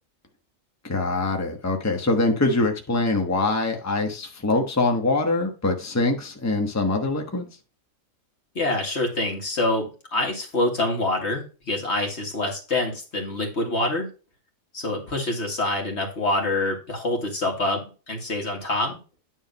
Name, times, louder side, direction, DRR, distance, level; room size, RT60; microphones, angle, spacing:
voice 1, 0.8-7.5, left 2 dB, 15° left, 1.1 m, -23 dB
voice 2, 8.6-14.1 14.7-19.0, left 2 dB, 55° left, 2.2 m, -26 dB
9.6 x 3.8 x 5.3 m
omnidirectional pair, 1.4 m